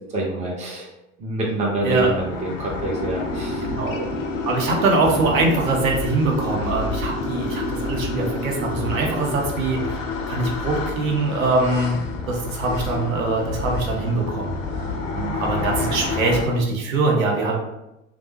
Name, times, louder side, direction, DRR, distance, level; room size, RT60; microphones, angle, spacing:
voice 1, 0.1-0.9 1.2-3.7 4.0-4.1, right 2 dB, 15° right, -2 dB, 0.6 m, -26 dB
sound 1, 1.5-16.4, left 4 dB, 30° left, 0.4 m, -30 dB
sound 2, 2.8-9.3, equal, ahead, 1.0 m, -31 dB
voice 2, 4.4-12.0 12.3-14.5 15.1-17.6, right 3 dB, 70° right, 0 dB, 0.7 m, -23 dB
3.2 x 2.0 x 2.8 m, 0.90 s
figure-of-eight pair, 80°, 42 cm